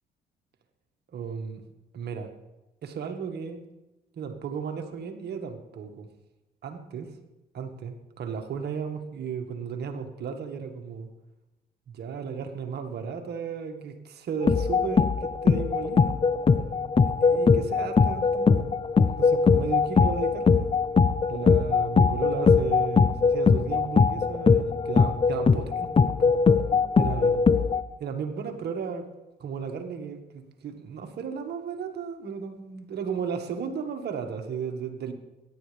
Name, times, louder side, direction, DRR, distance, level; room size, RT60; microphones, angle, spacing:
voice 1, 1.1-1.6 1.9-2.3 2.8-3.6 4.2-6.1 6.6-7.1 7.5-11.1 11.9-16.2 17.2-18.7 19.2-20.7 21.3-26.3 27.0-27.4 28.0-29.1 29.4-35.1, right 6 dB, 60° right, 5 dB, 1.8 m, -35 dB
sound 1, 14.4-27.8, left 5 dB, 30° left, 0.7 m, -21 dB
22.5 x 11.0 x 3.5 m, 1.0 s
hypercardioid pair, 60°, 19 cm